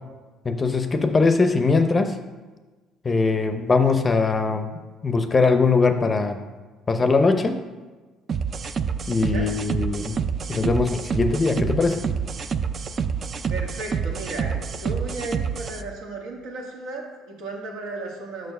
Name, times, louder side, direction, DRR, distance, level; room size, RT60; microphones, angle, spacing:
voice 1, 0.5-2.1 3.0-4.7 5.0-6.4 6.9-7.6 9.1-10.1 10.5-12.0, left 4 dB, 25° left, 8 dB, 0.5 m, -21 dB
sound 1, 8.3-15.8, right 6 dB, 45° right, 0.3 m, -28 dB
voice 2, 13.5-18.5, right 2 dB, 85° right, 0 dB, 1.5 m, -34 dB
6.1 x 4.5 x 5.3 m, 1.3 s
cardioid pair, 95°, 0 cm